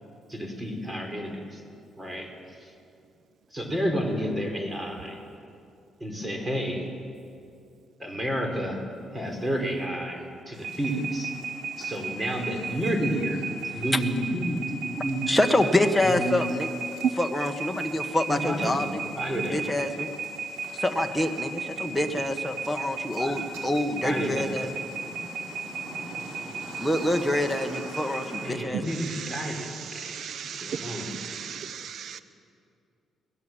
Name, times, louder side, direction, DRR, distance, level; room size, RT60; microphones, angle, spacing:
voice 1, 0.3-1.6 2.0-2.3 2.6-2.7 3.5-5.2 6.0-6.8 8.0-8.8 9.1-11.3 11.8-13.4 13.7-15.3 16.0-16.3 18.3-18.9 19.2-19.6 23.2-23.3 24.0-24.5 28.3-30.2 30.4-31.1 31.3-31.7, equal, 20° right, 3 dB, 4.4 m, -30 dB
sound 1, 10.5-28.5, right 4 dB, 90° right, 4.7 m, -36 dB
voice 2, 15.3-16.7 17.2-19.0 19.5-20.1 20.8-24.7 26.8-29.0, left 1 dB, 5° left, 5 dB, 1.7 m, -26 dB
voice 3, 28.7-32.2, right 7 dB, 65° right, 12 dB, 0.8 m, -36 dB
22.5 x 18.5 x 7.6 m, 2.5 s
cardioid pair, 90°, 0 cm